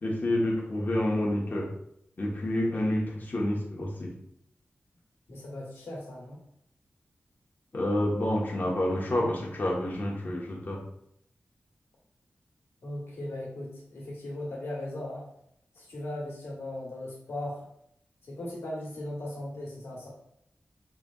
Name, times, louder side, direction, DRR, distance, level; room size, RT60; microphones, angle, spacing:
voice 1, 0.0-1.7 2.2-4.1 7.7-10.8, left 1 dB, 50° left, -2 dB, 1.1 m, -28 dB
voice 2, 5.3-6.4 12.8-15.2 15.7-17.6 18.2-20.1, left 1 dB, 85° left, -3 dB, 1.4 m, -38 dB
5.0 x 3.3 x 2.4 m, 0.73 s
wide cardioid pair, 65°, 4 cm